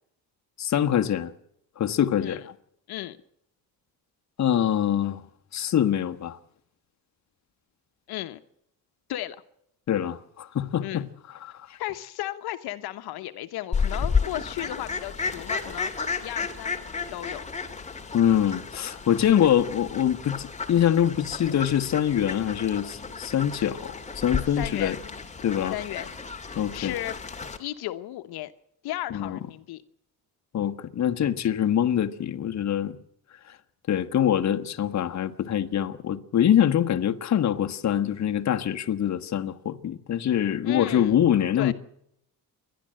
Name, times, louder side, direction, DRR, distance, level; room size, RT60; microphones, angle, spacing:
voice 1, 0.6-1.3 1.8-2.4 4.4-5.2 5.5-6.4 9.9-11.1 11.4-11.8 18.1-24.9 25.4-25.7 26.5-26.9 29.1-29.4 30.5-33.0 33.9-41.7, left 10 dB, 45° left, 1.4 m, -24 dB
voice 2, 8.1-8.4 9.1-9.4 10.8-11.1 11.8-15.9 16.2-17.4 24.6-25.0 25.7-26.1 26.5-27.2 27.6-28.5 28.8-29.8 40.6-41.1 41.6-41.7, left 15 dB, 85° left, 1.1 m, -34 dB
Fowl, 13.7-27.6, left 5 dB, 20° left, 2.1 m, -32 dB
29.5 x 11.5 x 7.7 m
cardioid pair, 125°, 37 cm